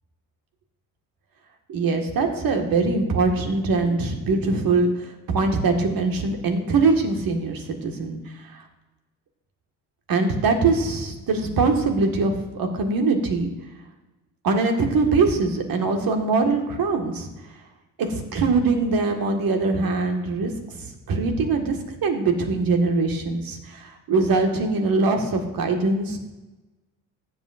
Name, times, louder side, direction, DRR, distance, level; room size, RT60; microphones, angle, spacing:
voice 1, 1.7-4.9 5.3-8.2 8.5-8.6 10.1-13.5 14.4-17.3 18.0-26.2, right 3 dB, 50° right, 4 dB, 1.9 m, -22 dB
15.0 x 8.1 x 2.6 m, 1.1 s
hypercardioid pair, 55°, 43 cm